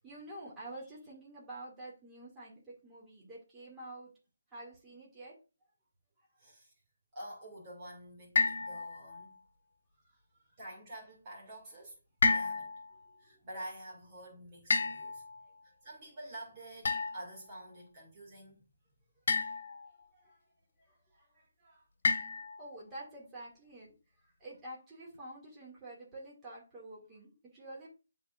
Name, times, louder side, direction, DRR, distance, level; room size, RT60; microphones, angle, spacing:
voice 1, 0.0-4.1 4.5-5.4 10.0-10.4 12.9-13.0 13.3-13.4 15.4-15.5 19.8-20.4 20.8-21.9 22.6-23.9 24.2-27.9, right 1 dB, 10° right, 2.3 m, -49 dB
voice 2, 6.4-6.7 7.1-9.4 10.6-12.0 12.3-12.7 13.2-15.2 15.6-18.6, right 1 dB, 30° right, 2.2 m, -48 dB
sound 1, 8.4-9.3 12.2-12.9 14.7-15.5 16.8-17.3 19.3-19.9 22.0-22.7, left 4 dB, 60° left, 1.3 m, -31 dB
11.5 x 4.0 x 2.5 m
hypercardioid pair, 165°, 0 cm